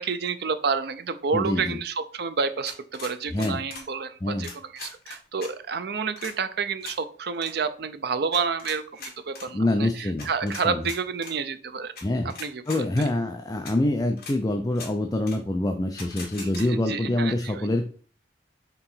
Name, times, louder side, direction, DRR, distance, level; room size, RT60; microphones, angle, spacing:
voice 1, 0.0-11.9 12.4-12.9 16.4-17.7, right 5 dB, 60° right, 11 dB, 0.6 m, -29 dB
voice 2, 1.3-1.8 3.3-3.6 4.2-4.5 9.5-10.9 12.0-12.3 12.7-17.8, left 1 dB, 20° left, 6 dB, 0.5 m, -26 dB
sound 1, 2.6-3.9 4.4-5.5 6.2-6.3 6.8-7.0 7.3-7.5 8.3-9.5 10.2-11.3 12.0-12.1 12.3-13.1 13.6-13.7 14.2-14.4 14.7-14.9 15.3-15.4 16.0-16.7, left 4 dB, 60° left, 2.0 m, -40 dB
4.6 x 3.8 x 5.6 m, 0.43 s
head